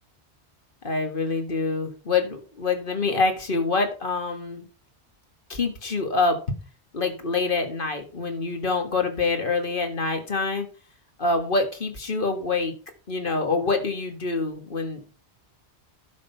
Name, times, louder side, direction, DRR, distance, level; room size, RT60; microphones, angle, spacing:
voice 1, 0.8-4.7 5.5-6.4 6.9-10.7 11.2-12.7 13.1-15.1, left 3 dB, 50° left, 5 dB, 1.8 m, -26 dB
11.5 x 5.6 x 4.4 m, 0.35 s
omnidirectional pair, 1.2 m